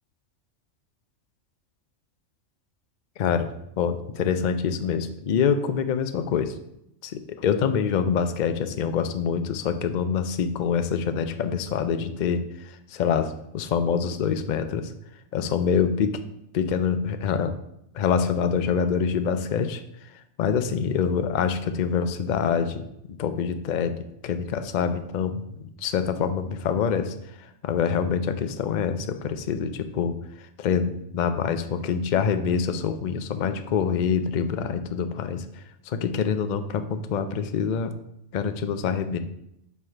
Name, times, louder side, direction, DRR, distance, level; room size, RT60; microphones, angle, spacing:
voice 1, 3.8-6.5 7.0-12.4 12.9-14.9 15.3-16.1 16.5-17.5 17.9-19.8 20.4-25.4 25.8-27.1 27.6-30.2 30.6-35.4 35.9-38.0 38.3-39.2, left 7 dB, 55° left, 9 dB, 0.5 m, -25 dB
5.6 x 4.8 x 6.3 m, 0.80 s
omnidirectional pair, 1.3 m